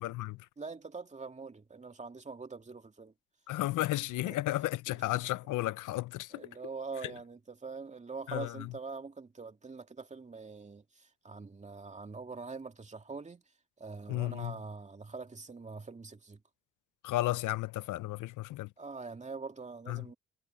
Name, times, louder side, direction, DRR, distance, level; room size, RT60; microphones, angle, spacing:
voice 1, 0.0-0.4 3.5-6.5 8.3-8.7 14.1-14.6 17.0-18.7 19.9-20.0, left 16 dB, 85° left, 0.8 m, -33 dB
voice 2, 0.6-3.1 3.8-3.9 4.3-4.4 4.9-5.0 6.3-13.4 13.8-16.4 18.8-20.1, right 4 dB, 25° right, 2.3 m, -44 dB
cardioid pair, 90°, 30 cm